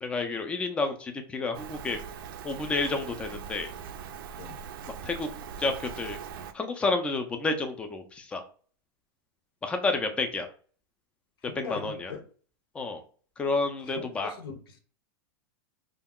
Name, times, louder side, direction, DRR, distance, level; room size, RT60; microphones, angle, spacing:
voice 1, 0.0-2.0 2.4-3.7 5.0-5.3 5.6-6.2 6.5-8.4 9.6-10.5 11.6-12.1 12.7-13.0 13.4-14.3, left 3 dB, 10° left, 6 dB, 0.3 m, -30 dB
Rain, 1.5-6.5, right 7 dB, 70° right, 0.4 m, -41 dB
voice 2, 11.6-12.2 13.8-14.8, left 6 dB, 80° left, 5 dB, 0.7 m, -41 dB
2.3 x 2.0 x 3.5 m, 0.42 s
supercardioid pair, 155°, 12 cm